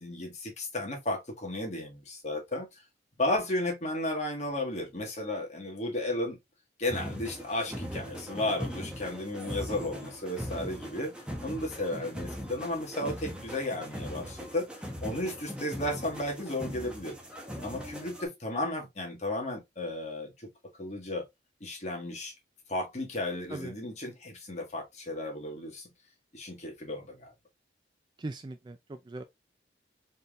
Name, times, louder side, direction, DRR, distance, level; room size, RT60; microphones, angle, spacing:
voice 1, 0.0-2.7 3.2-6.4 6.8-11.1 11.4-17.1 17.6-20.5 20.8-21.3 21.6-22.3 22.7-25.9 26.3-27.3, left 1 dB, 35° left, 1.6 m, -34 dB
sound 1, 6.9-18.3, equal, 5° right, 0.9 m, -40 dB
voice 2, 28.2-29.2, right 2 dB, 25° right, 0.3 m, -40 dB
4.2 x 3.6 x 2.4 m
head